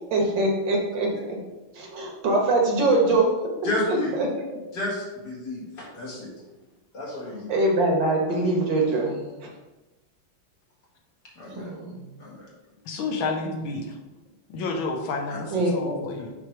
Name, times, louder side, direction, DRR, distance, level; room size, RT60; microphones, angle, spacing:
voice 1, 0.1-1.4 1.8-3.3 3.9-4.6 7.5-9.2 11.6-12.0 15.5-16.2, right 2 dB, 65° right, 0 dB, 1.8 m, -23 dB
voice 2, 3.6-4.1 4.7-6.3 6.9-7.5 11.4-11.7 12.2-12.5, left 2 dB, 55° left, -4 dB, 2.2 m, -31 dB
voice 3, 12.8-14.0 14.5-16.3, left 3 dB, 80° left, 2 dB, 1.6 m, -30 dB
6.0 x 3.1 x 5.7 m, 1.1 s
omnidirectional pair, 2.2 m